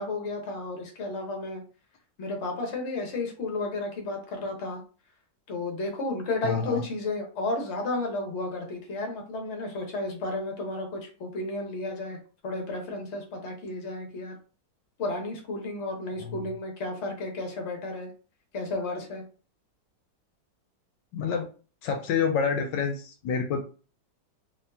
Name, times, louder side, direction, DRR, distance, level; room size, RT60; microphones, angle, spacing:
voice 1, 0.0-1.6 2.2-4.8 5.5-14.4 15.0-18.1 18.5-19.2, left 2 dB, 45° left, 2 dB, 1.1 m, -32 dB
voice 2, 6.4-6.8 16.2-16.4 21.1-21.5 21.8-23.6, left 6 dB, 80° left, 4 dB, 1.2 m, -28 dB
3.0 x 2.7 x 3.4 m, 0.37 s
omnidirectional pair, 2.0 m